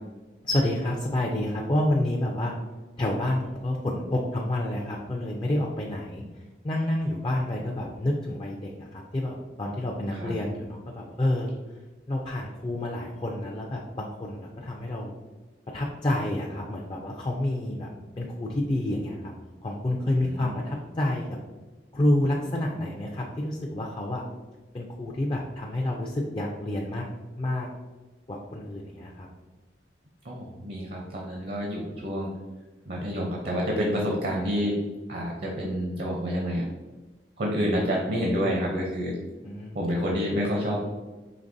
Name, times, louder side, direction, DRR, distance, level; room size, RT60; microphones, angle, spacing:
voice 1, 0.4-2.5 3.0-6.2 6.6-11.5 12.1-15.2 15.7-17.9 18.2-19.3 19.6-21.3 21.9-24.2 24.7-27.1 27.4-27.7 28.3-29.3 39.4-40.0, left 1 dB, 30° left, -1 dB, 0.4 m, -29 dB
voice 2, 20.2-20.6 30.2-32.3 32.9-34.8 35.1-36.7 37.4-39.2 39.7-40.8, equal, 55° right, -1 dB, 0.6 m, -28 dB
5.2 x 3.0 x 2.6 m, 1.2 s
head